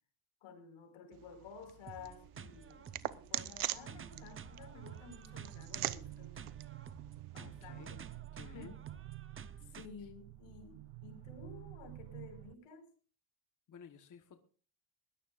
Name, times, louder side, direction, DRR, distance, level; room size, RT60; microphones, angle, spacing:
voice 1, 0.4-6.5 7.2-8.1 8.4-8.8 9.6-12.9, left 5 dB, 80° left, 6 dB, 5.2 m, -53 dB
sound 1, 1.1-7.9, right 16 dB, 75° right, 1.1 m, -44 dB
sound 2, 1.9-9.9, right 6 dB, 25° right, 0.8 m, -52 dB
sound 3, 3.8-12.5, right 16 dB, 60° right, 0.6 m, -50 dB
voice 2, 7.4-7.9 8.3-8.7 10.0-10.1 13.7-14.4, left 7 dB, 35° left, 7 dB, 1.2 m, -54 dB
21.0 x 17.0 x 2.5 m, 0.39 s
cardioid pair, 140°, 50 cm